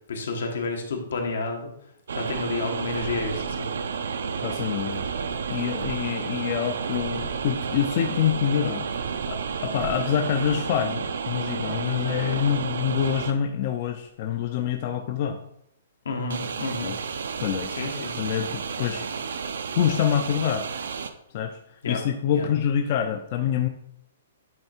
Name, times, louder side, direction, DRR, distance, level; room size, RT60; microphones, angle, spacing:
voice 1, 0.1-1.7 2.1-3.7 16.0-16.9 17.7-18.4 21.8-22.0 22.3-22.5, left 3 dB, 80° left, 2 dB, 1.5 m, -30 dB
sound 1, 2.1-13.3 16.3-21.1, right 6 dB, 85° right, 0.6 m, -31 dB
sound 2, 2.9-3.9 4.9-6.0 6.4-6.5 6.9-7.9 8.9-10.0, right 6 dB, 50° right, 0.8 m, -40 dB
voice 2, 4.4-8.9 9.3-15.4 16.8-17.0 17.4-17.7 18.2-19.1 19.7-20.7 21.3-21.6 21.9-23.7, left 9 dB, 35° left, 6 dB, 0.4 m, -26 dB
8.8 x 3.3 x 4.4 m, 0.74 s
hypercardioid pair, 170°, 0 cm